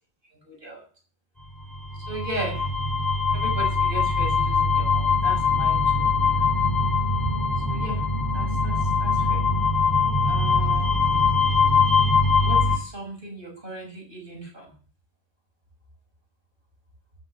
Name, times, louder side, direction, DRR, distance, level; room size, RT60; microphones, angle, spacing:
voice 1, 0.4-0.8 2.1-2.6 3.3-6.5 7.7-8.0 8.3-9.4 9.9-11.4 12.4-14.7, right 1 dB, 50° right, 0 dB, 6.9 m, -37 dB
sound 1, 1.7-12.8, left 4 dB, 20° left, 3.0 m, -22 dB
12.5 x 10.5 x 7.8 m, 0.41 s
omnidirectional pair, 1.1 m